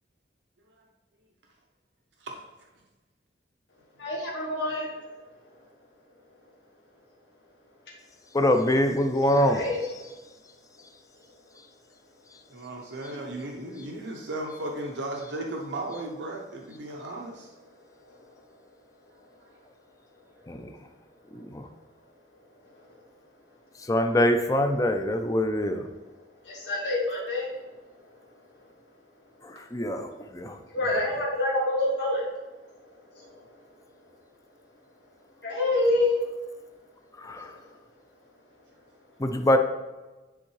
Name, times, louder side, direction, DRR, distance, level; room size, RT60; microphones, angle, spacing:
voice 1, 4.0-4.9 9.3-9.8 26.4-27.5 30.7-32.2 33.1-33.4 35.4-36.1 37.4-37.5, left 2 dB, 75° left, -4 dB, 1.5 m, -27 dB
voice 2, 8.3-9.7 20.5-20.7 21.3-21.7 23.9-25.9 29.4-30.6 37.2-37.5 39.2-39.6, left 1 dB, 20° left, 6 dB, 0.5 m, -24 dB
voice 3, 12.5-17.5, right 1 dB, 85° right, 1 dB, 0.7 m, -35 dB
10.0 x 3.6 x 3.2 m, 1.2 s
head